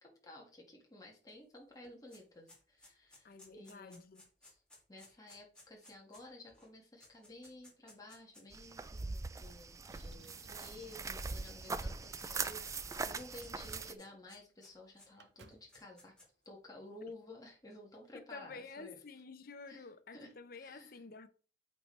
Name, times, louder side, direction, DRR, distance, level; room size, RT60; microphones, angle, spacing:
voice 1, 0.0-4.0 4.4-4.6 4.9-16.1 16.5-19.0 19.7-19.8 20.1-20.3 20.6-20.9, left 2 dB, 20° left, 1.8 m, -54 dB
sound 1, 1.3-1.4 1.6-8.6 9.3-9.4 10.5-11.5 11.9-15.1 15.5-16.5, left 1 dB, 5° left, 2.5 m, -61 dB
voice 2, 3.2-4.2 18.1-21.3, left 4 dB, 55° left, 0.7 m, -50 dB
sound 2, 8.5-13.9, right 4 dB, 20° right, 0.3 m, -41 dB
Motor vehicle (road), 9.9-11.0 11.8-13.3 13.6-14.0 14.2-14.3 14.7-15.8 16.9-17.0, right 3 dB, 70° right, 0.8 m, -62 dB
8.3 x 4.3 x 3.2 m
head